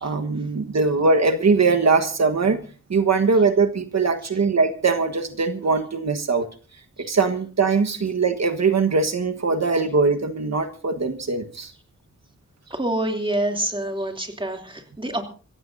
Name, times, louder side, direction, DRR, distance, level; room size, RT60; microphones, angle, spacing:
voice 1, 0.0-2.6 2.9-6.5 7.0-11.7, right 4 dB, 65° right, 6 dB, 1.4 m, -21 dB
voice 2, 12.7-15.2, right 1 dB, 15° right, 3 dB, 2.9 m, -26 dB
26.5 x 15.0 x 2.7 m, 0.37 s
wide cardioid pair, 110°, 29 cm